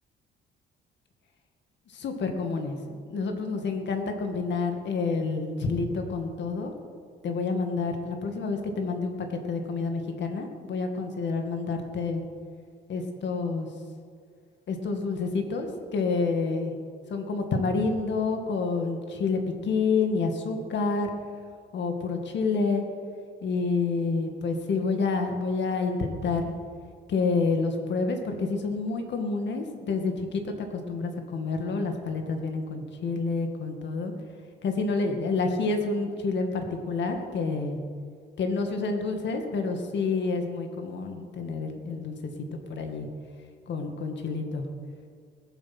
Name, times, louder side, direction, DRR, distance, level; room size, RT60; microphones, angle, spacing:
voice 1, 1.9-2.8 3.1-6.7 7.2-12.2 12.9-13.7 14.7-16.7 17.1-21.1 21.7-22.8 23.4-26.5 27.1-34.1 34.6-37.8 38.4-43.1 43.7-44.7, left 4 dB, 65° left, 4 dB, 2.0 m, -28 dB
20.5 x 7.6 x 6.1 m, 2.1 s
cardioid pair, 90°, 20 cm